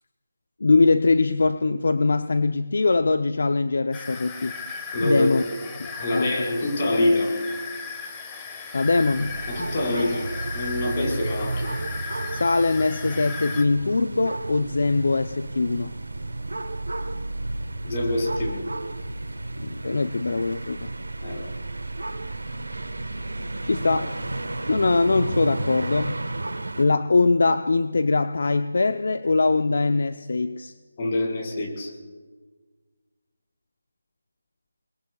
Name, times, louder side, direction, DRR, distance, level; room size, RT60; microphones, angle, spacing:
voice 1, 0.6-4.5 5.0-5.4 5.8-6.4 8.7-9.3 12.3-15.9 19.6-20.9 23.6-24.2 24.6-26.2 26.8-30.7, left 3 dB, 65° left, 9 dB, 0.7 m, -22 dB
sound 1, 3.9-13.6, left 4 dB, 15° left, 1.4 m, -37 dB
voice 2, 4.9-5.6 6.0-7.3 9.5-11.8 17.8-18.6 21.2-21.4 31.0-31.9, left 1 dB, 35° left, -1 dB, 4.7 m, -25 dB
sound 2, 8.7-26.9, right 2 dB, 80° right, 1.4 m, -32 dB
29.5 x 20.5 x 2.4 m, 1.4 s
figure-of-eight pair, 165°, 0 cm